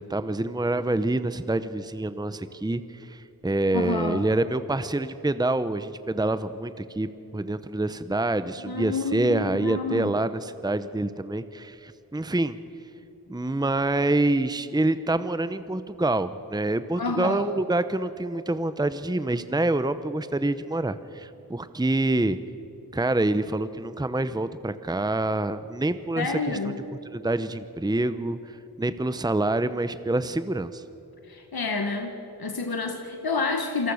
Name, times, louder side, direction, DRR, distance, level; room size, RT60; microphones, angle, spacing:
voice 1, 0.0-12.6 13.3-22.4 22.9-26.7 27.1-30.8, right 2 dB, 10° right, 13 dB, 0.8 m, -26 dB
voice 2, 3.7-4.3 8.6-10.1 17.0-17.4 26.2-26.7 31.3-32.1 32.4-33.9, left 3 dB, 85° left, 5 dB, 1.6 m, -29 dB
27.5 x 19.0 x 6.5 m, 3.0 s
wide cardioid pair, 50°, 36 cm